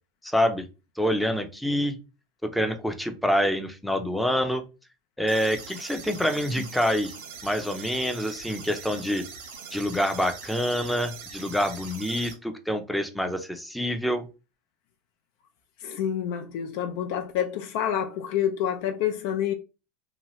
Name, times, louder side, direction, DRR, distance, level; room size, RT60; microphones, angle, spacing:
voice 1, 0.2-0.7 1.0-2.0 2.4-4.6 5.2-7.1 7.4-9.2 9.7-14.3, equal, 5° left, 0.5 m, -26 dB
sound 1, 5.3-12.3, right 6 dB, 85° right, 1.1 m, -42 dB
voice 2, 15.8-19.5, left 9 dB, 70° left, 0.4 m, -28 dB
2.9 x 2.3 x 3.0 m
supercardioid pair, 120°, 0 cm